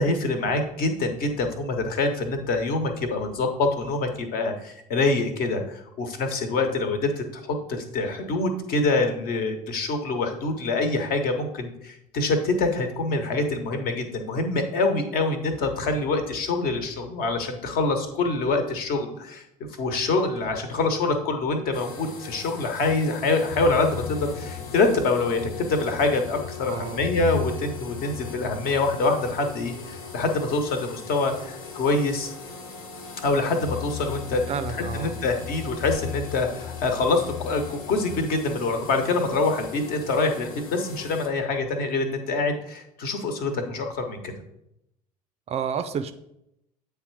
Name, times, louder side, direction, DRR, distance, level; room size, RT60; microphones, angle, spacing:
voice 1, 0.0-19.4 19.8-32.3 33.2-34.4 34.9-44.3, left 3 dB, 50° left, 5 dB, 1.2 m, -25 dB
sound 1, 21.7-41.3, left 3 dB, 65° left, 1.2 m, -40 dB
sound 2, 22.9-31.4 31.8-31.9 33.6-38.3, left 9 dB, 35° left, 0.5 m, -37 dB
voice 2, 26.7-27.1 34.5-35.2 45.5-46.1, right 7 dB, 30° right, 10 dB, 0.5 m, -30 dB
8.2 x 3.4 x 4.7 m, 0.80 s
figure-of-eight pair, 65°, 20 cm